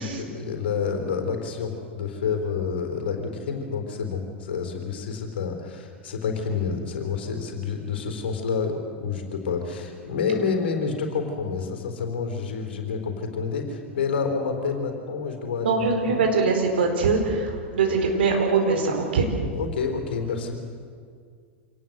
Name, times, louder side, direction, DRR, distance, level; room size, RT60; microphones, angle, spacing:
voice 1, 0.0-16.2 19.5-20.6, left 5 dB, 60° left, 4 dB, 3.8 m, -29 dB
voice 2, 15.6-19.3, right 4 dB, 60° right, 3 dB, 4.3 m, -22 dB
26.0 x 19.0 x 8.0 m, 2.1 s
figure-of-eight pair, 90°, 6 cm